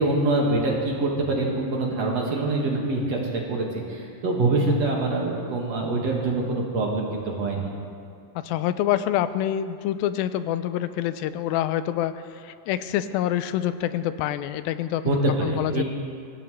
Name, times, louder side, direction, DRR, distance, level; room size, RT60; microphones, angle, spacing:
voice 1, 0.0-7.7 15.1-15.8, right 2 dB, 50° right, -2 dB, 2.5 m, -25 dB
voice 2, 8.4-15.0 15.4-15.9, left 12 dB, 85° left, 12 dB, 2.4 m, -26 dB
23.0 x 17.0 x 3.2 m, 2.3 s
omnidirectional pair, 4.1 m